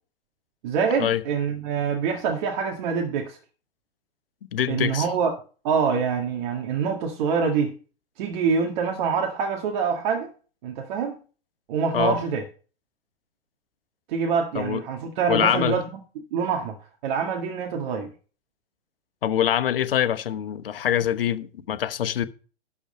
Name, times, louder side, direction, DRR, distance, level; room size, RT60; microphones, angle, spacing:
voice 1, 0.6-3.4 4.7-5.4 5.6-7.7 8.2-10.3 10.6-11.1 11.7-12.4 14.1-15.8 16.3-16.8 17.0-18.1, right 6 dB, 50° right, 2.0 m, -25 dB
voice 2, 4.5-5.1 11.9-12.2 14.5-14.8 15.3-15.8 19.2-22.3, left 10 dB, 65° left, 1.0 m, -24 dB
12.0 x 4.8 x 6.6 m
figure-of-eight pair, 105°, 31 cm